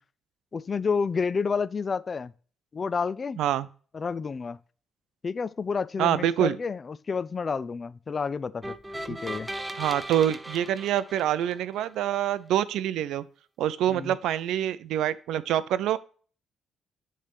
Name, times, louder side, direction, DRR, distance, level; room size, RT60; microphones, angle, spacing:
voice 1, 0.5-2.3 2.7-3.4 3.9-4.6 5.2-8.7 9.1-9.5 13.9-14.1, left 5 dB, 40° left, 0.4 m, -30 dB
voice 2, 3.4-3.7 6.0-6.6 9.8-13.2 13.6-16.0, right 11 dB, 85° right, 0.4 m, -26 dB
sound 1, 8.6-11.9, right 1 dB, 10° right, 0.5 m, -37 dB
6.4 x 3.3 x 5.8 m
cardioid pair, 90°, 0 cm